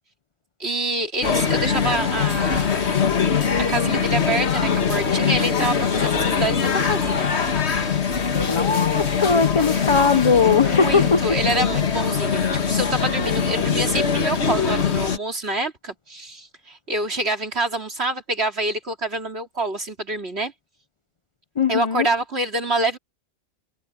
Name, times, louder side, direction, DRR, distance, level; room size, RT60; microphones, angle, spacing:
voice 1, 0.6-2.9 3.7-7.3 10.7-20.5 21.7-23.0, right 2 dB, 70° right, 3.7 m, -26 dB
sound 1, 1.2-15.2, left 6 dB, 75° left, 1.8 m, -22 dB
voice 2, 8.5-11.2 21.6-22.1, left 5 dB, 35° left, 0.6 m, -19 dB
omnidirectional pair, 1.1 m